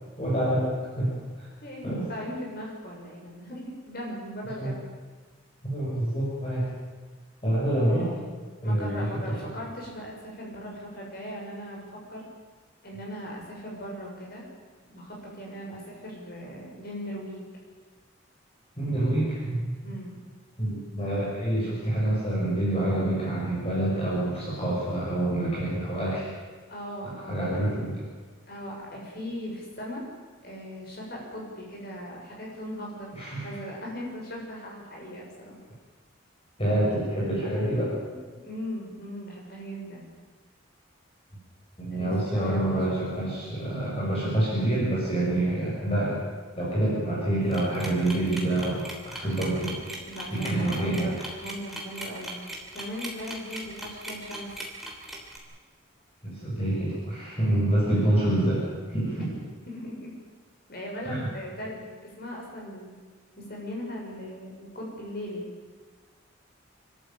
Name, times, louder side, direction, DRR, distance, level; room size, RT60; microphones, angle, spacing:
voice 1, 0.2-1.5 1.8-2.1 4.6-4.7 5.6-6.7 7.4-8.1 8.6-9.5 18.8-19.7 20.6-26.3 27.0-28.0 33.1-33.5 36.6-37.9 41.8-46.2 46.5-49.8 50.3-51.1 56.2-58.6 58.9-59.3 61.0-61.3, right 1 dB, 30° left, -6 dB, 6.3 m, -27 dB
voice 2, 1.6-4.8 7.9-8.3 8.6-11.8 12.1-12.2 12.8-14.4 14.9-17.4 19.8-20.2 26.7-27.4 28.5-30.0 30.4-33.1 33.4-35.6 38.0-40.1 41.9-42.7 50.0-52.4 52.7-54.5 59.2-59.3 59.7-60.1 60.7-61.8 62.2-62.9 63.4-65.4, equal, 50° left, -2 dB, 6.8 m, -38 dB
sound 1, 47.5-55.4, right 1 dB, ahead, 3.3 m, -38 dB
27.5 x 13.0 x 9.0 m, 1.4 s
head